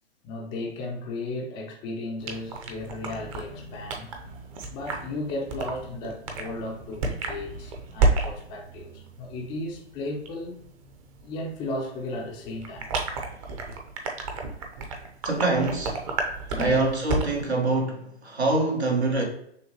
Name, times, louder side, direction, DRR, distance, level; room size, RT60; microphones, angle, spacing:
voice 1, 0.2-4.1 4.7-10.6 11.2-12.9 16.5-16.8, left 2 dB, 15° left, 0.4 m, -35 dB
sound 1, 2.2-17.5, right 3 dB, 30° right, 0.7 m, -32 dB
voice 2, 15.2-16.0 16.5-19.2, right 2 dB, 85° right, 1.5 m, -25 dB
6.4 x 2.3 x 3.0 m
figure-of-eight pair, 125°, 32 cm